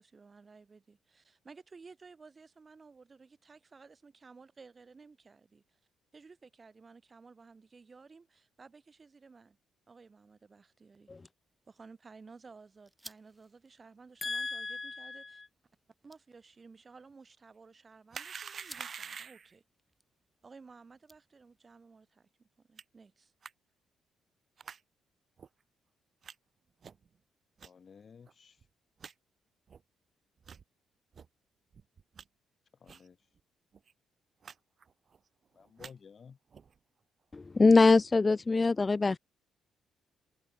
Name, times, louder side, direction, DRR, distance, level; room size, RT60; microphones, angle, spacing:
voice 1, 0.0-5.8 6.1-9.6 9.9-11.1 11.7-15.4 16.0-19.6 20.4-23.3, right 4 dB, 30° right, 6.8 m, -55 dB
sound 1, 11.4-21.7, right 1 dB, 5° right, 6.9 m, -60 dB
voice 2, 14.2-15.2 37.3-39.2, left 3 dB, 25° left, 0.4 m, -24 dB
sound 2, 18.1-19.6 22.8-22.9 23.4-23.5 24.6-24.8 25.4-25.5 26.2-26.3 26.8-27.1 27.6-27.7 28.3-28.4 28.6-28.7 29.0-29.1 29.7-29.8 30.4-30.6 31.1-31.3 31.7-32.2 32.9-33.1 33.4-33.5 33.7-33.9 34.4-34.6 34.8-35.2 35.6-35.9 36.5-36.8, right 6 dB, 45° right, 0.5 m, -46 dB
voice 3, 27.6-28.6 32.8-33.2 35.5-36.4, left 6 dB, 45° left, 1.1 m, -54 dB
cardioid pair, 90°, 0 cm